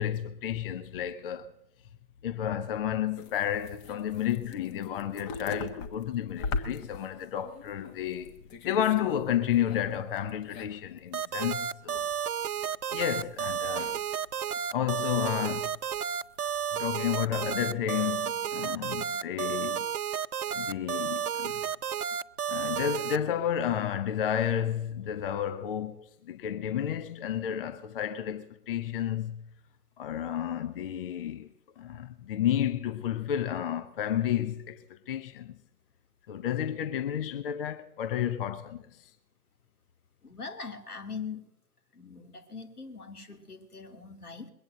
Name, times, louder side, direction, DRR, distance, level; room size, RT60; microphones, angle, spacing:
voice 1, 0.0-1.5 2.2-12.1 12.9-14.0 14.7-15.8 16.4-19.9 20.5-21.6 22.5-29.4 30.0-31.5 31.8-35.6 36.3-39.1, left 10 dB, 40° left, 0.8 m, -31 dB
sound 1, 3.2-9.2 9.5-11.0 11.3-11.4 11.8-12.3 12.6-14.3 14.7-15.3 15.8-16.6 16.8-17.3, left 4 dB, 20° left, 1.2 m, -41 dB
sound 2, 11.1-23.2, right 8 dB, 80° right, 0.6 m, -32 dB
voice 2, 40.2-41.5 41.9-44.5, left 5 dB, 80° left, 2.8 m, -41 dB
21.5 x 8.8 x 7.7 m
figure-of-eight pair, 125°, 45 cm